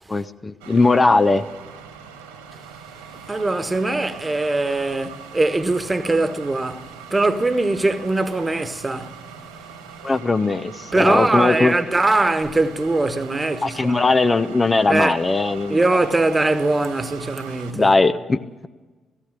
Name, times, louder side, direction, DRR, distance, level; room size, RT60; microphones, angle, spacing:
voice 1, 0.1-1.4 10.0-11.7 13.6-15.8 17.7-18.4, left 3 dB, 30° left, 0.9 m, -19 dB
sound 1, 0.6-17.7, right 6 dB, 75° right, 2.1 m, -41 dB
voice 2, 3.3-9.2 10.9-14.0 14.9-15.2 15.7-17.9, right 2 dB, 25° right, 1.5 m, -21 dB
17.0 x 16.0 x 10.0 m
figure-of-eight pair, 40°, 0 cm